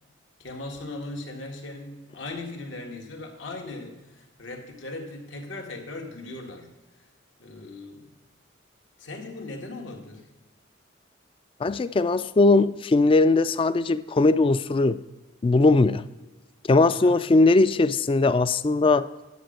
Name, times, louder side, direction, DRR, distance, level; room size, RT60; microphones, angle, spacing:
voice 1, 0.4-6.7 7.4-8.1 9.0-10.3 16.9-17.2, left 2 dB, 80° left, 2 dB, 1.7 m, -38 dB
voice 2, 11.6-15.0 15.4-16.0 16.7-19.1, left 3 dB, 30° left, 15 dB, 0.3 m, -20 dB
10.5 x 7.0 x 6.4 m, 1.2 s
head